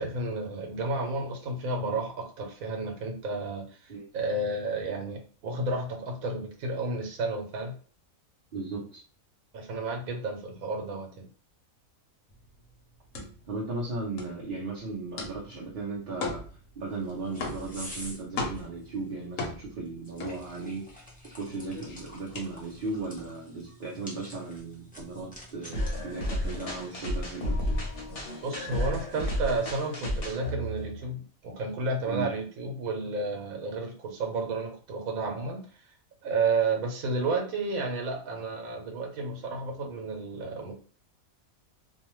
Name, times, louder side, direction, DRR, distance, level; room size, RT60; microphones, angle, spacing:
voice 1, 0.0-7.7 9.5-11.3 28.4-35.7 36.2-40.7, right 3 dB, 80° right, 3 dB, 1.2 m, -31 dB
voice 2, 8.5-9.0 13.5-16.4 16.8-27.7 32.1-32.3, right 3 dB, 50° right, -5 dB, 0.7 m, -36 dB
sound 1, 12.3-21.0 21.3-23.2, left 3 dB, 70° left, 1.1 m, -38 dB
sound 2, 16.8-28.3, left 1 dB, 10° left, 0.4 m, -48 dB
sound 3, 25.7-31.1, equal, 50° left, 0.9 m, -32 dB
2.7 x 2.2 x 3.0 m, 0.42 s
omnidirectional pair, 1.5 m